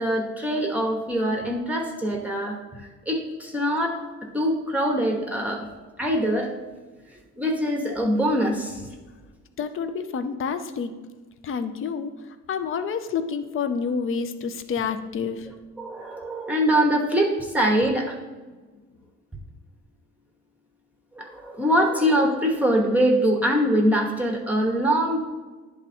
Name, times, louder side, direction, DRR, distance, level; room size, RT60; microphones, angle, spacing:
voice 1, 0.0-4.0 4.3-5.7 6.0-6.6 7.4-8.9 15.8-18.2 21.1-25.2, equal, 5° right, 0 dB, 0.9 m, -23 dB
voice 2, 9.6-11.0 11.4-15.5, left 6 dB, 45° left, 10 dB, 0.6 m, -29 dB
9.9 x 3.6 x 4.2 m, 1.3 s
cardioid pair, 90°, 30 cm